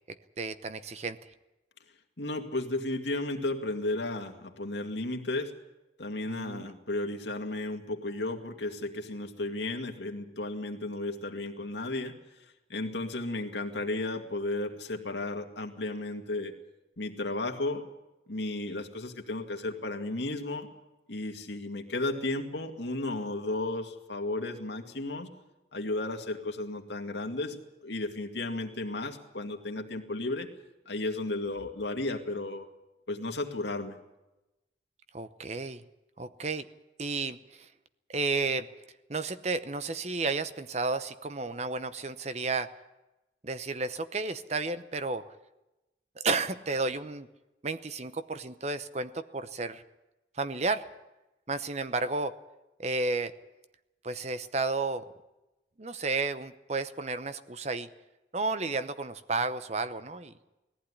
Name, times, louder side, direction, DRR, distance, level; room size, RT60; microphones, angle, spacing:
voice 1, 0.4-1.2 6.3-6.6 35.1-35.8 36.2-36.7 37.0-37.4 38.1-38.7 39.1-42.7 43.4-45.3 46.2-47.3 47.6-49.8 50.4-50.9 51.5-52.4 52.8-53.3 54.0-55.1 55.8-57.9 58.3-60.3, right 3 dB, 35° right, 12 dB, 0.8 m, -32 dB
voice 2, 2.2-5.5 6.0-12.2 12.7-16.5 17.0-17.8 18.3-20.7 21.1-25.3 25.7-30.5 30.9-32.7 33.1-34.0, left 2 dB, 75° left, 4 dB, 2.2 m, -34 dB
19.5 x 15.0 x 9.8 m, 1.0 s
head